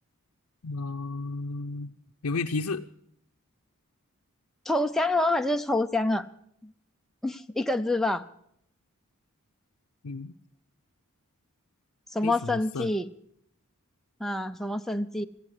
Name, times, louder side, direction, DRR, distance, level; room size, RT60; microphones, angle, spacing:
voice 1, 0.6-1.9 2.2-2.8 10.0-10.3 12.2-12.9, left 3 dB, 75° left, 3 dB, 0.6 m, -32 dB
voice 2, 4.7-6.3 6.6-6.7 7.2-8.2 12.1-13.1 14.2-15.3, left 2 dB, ahead, 5 dB, 0.5 m, -27 dB
17.5 x 15.0 x 4.9 m, 0.70 s
head